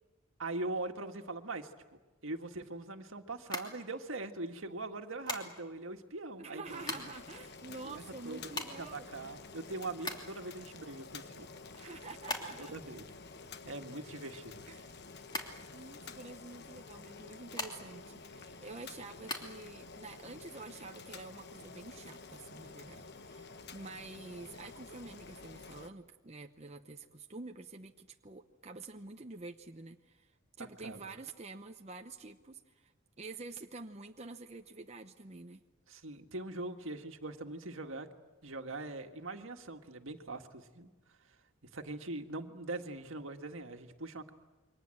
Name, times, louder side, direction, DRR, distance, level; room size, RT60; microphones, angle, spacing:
voice 1, 0.4-1.7 2.2-7.0 7.8-11.5 11.8-11.9 12.6-13.1 13.6-14.7 30.8-31.0 35.9-38.1 38.4-40.9 41.7-44.3, right 2 dB, 70° right, 5 dB, 1.9 m, -42 dB
sound 1, 3.4-4.4 5.3-5.9 6.5-7.3 7.6-7.7 7.9-10.5 10.9-12.8 13.1-14.9 15.3-16.3 17.1-18.1 18.5-19.4, left 2 dB, 20° left, 2.9 m, -41 dB
voice 2, 6.4-9.1 11.7-12.7 14.7-15.0 15.7-30.3 30.6-32.9 33.2-35.6, right 3 dB, 30° right, 5 dB, 0.8 m, -48 dB
Boiling, 6.6-25.9, left 4 dB, 50° left, 1.2 m, -50 dB
28.5 x 24.0 x 7.8 m, 1.2 s
head